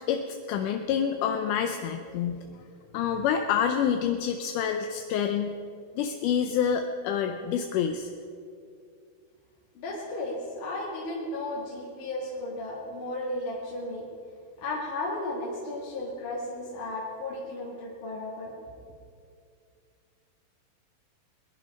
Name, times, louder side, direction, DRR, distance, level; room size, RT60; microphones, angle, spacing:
voice 1, 0.5-2.4 2.9-5.6 6.0-8.1, left 8 dB, 75° left, 5 dB, 2.0 m, -27 dB
voice 2, 9.8-14.1 14.6-18.5, left 2 dB, 60° left, -5 dB, 3.3 m, -34 dB
22.0 x 11.0 x 5.4 m, 2.4 s
omnidirectional pair, 4.1 m